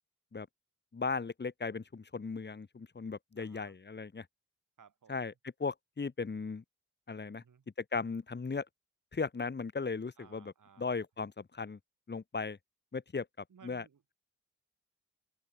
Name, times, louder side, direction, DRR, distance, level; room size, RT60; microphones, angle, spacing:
voice 1, 0.9-4.2 5.1-5.3 5.6-6.6 7.1-7.4 7.8-8.6 9.1-10.5 10.8-11.8 12.1-12.6 12.9-13.3 13.6-13.8, left 4 dB, 35° left, 1.3 m, -37 dB
voice 2, 3.4-3.8 4.8-5.3 7.4-7.6 10.2-11.0 13.5-14.0, right 7 dB, 75° right, 6.8 m, -60 dB
open air
cardioid pair, 50°, 31 cm